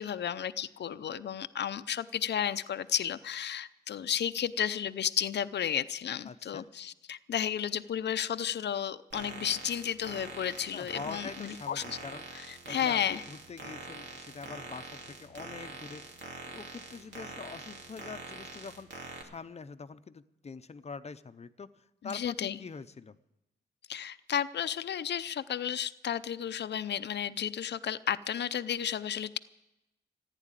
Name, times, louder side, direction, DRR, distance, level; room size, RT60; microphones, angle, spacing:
voice 1, 0.0-11.8 12.3-13.2 22.0-22.6 23.9-29.4, left 9 dB, 70° left, 12 dB, 0.6 m, -33 dB
voice 2, 6.3-6.7 10.7-12.2 12.7-16.0 16.4-18.9 19.2-23.2, left 5 dB, 35° left, 12 dB, 0.7 m, -44 dB
sound 1, 9.1-19.2, right 3 dB, 80° right, 2.7 m, -44 dB
15.0 x 9.9 x 9.1 m, 0.91 s
wide cardioid pair, 135°, 18 cm